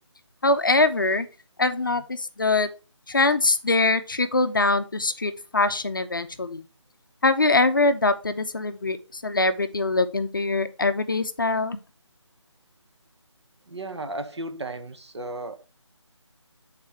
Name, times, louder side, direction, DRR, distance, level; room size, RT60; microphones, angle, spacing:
voice 1, 0.4-1.3 1.6-2.7 3.1-6.6 7.2-11.8, left 3 dB, 45° left, 0.5 m, -23 dB
voice 2, 13.7-15.6, right 2 dB, 65° right, 0.9 m, -35 dB
6.3 x 4.0 x 4.2 m
figure-of-eight pair, 175°, 16 cm